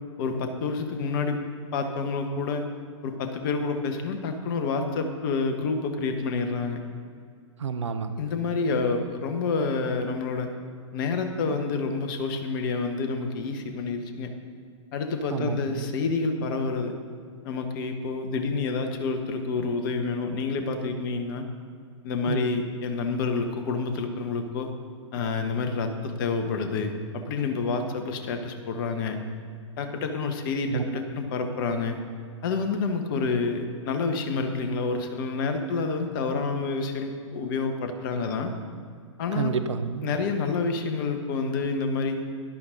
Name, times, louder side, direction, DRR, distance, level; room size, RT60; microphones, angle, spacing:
voice 1, 0.2-1.4 1.7-2.6 3.0-6.8 8.2-10.5 10.9-14.3 14.9-17.0 17.4-21.4 22.0-24.7 25.1-29.2 29.8-32.0 32.4-38.5 39.2-39.5 40.0-42.2, left 4 dB, 40° left, 6 dB, 1.4 m, -28 dB
voice 2, 7.6-8.2 15.3-15.7 22.3-22.6 30.7-31.0 39.3-40.1, right 5 dB, 65° right, 10 dB, 0.8 m, -29 dB
12.0 x 11.5 x 4.0 m, 2.2 s
figure-of-eight pair, 110°, 16 cm